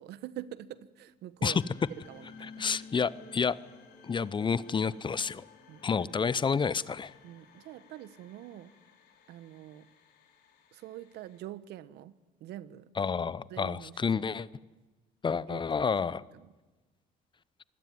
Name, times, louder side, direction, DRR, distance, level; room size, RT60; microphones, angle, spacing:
voice 1, 0.0-1.6 1.9-2.7 5.7-5.8 7.2-8.7 9.3-9.9 10.7-12.1 12.4-12.9 13.5-14.4 15.5-15.9 16.3-16.5, right 13 dB, 80° right, 16 dB, 1.1 m, -45 dB
sound 1, 1.4-11.4, left 4 dB, 75° left, 4.6 m, -54 dB
voice 2, 2.6-3.6 4.0-5.4 5.8-7.1 13.0-14.5 15.2-16.2, left 5 dB, 30° left, 19 dB, 0.8 m, -29 dB
26.0 x 21.0 x 9.5 m, 1.2 s
cardioid pair, 110°, 17 cm